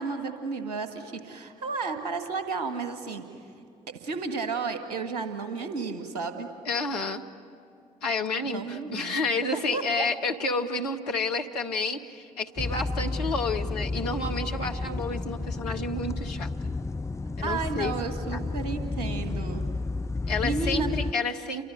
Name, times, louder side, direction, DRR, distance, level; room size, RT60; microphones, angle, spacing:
voice 1, 0.0-3.2 3.9-6.5 8.4-9.2 9.5-9.8 17.4-19.7 20.4-21.0, right 4 dB, 80° right, 7 dB, 1.8 m, -32 dB
voice 2, 6.7-7.2 8.0-16.5 17.4-17.9 18.3-18.4 20.3-21.7, left 3 dB, 80° left, 4 dB, 1.1 m, -30 dB
sound 1, 12.6-21.1, left 3 dB, 15° left, 0.7 m, -31 dB
29.0 x 24.0 x 8.1 m, 2.5 s
figure-of-eight pair, 45°, 20 cm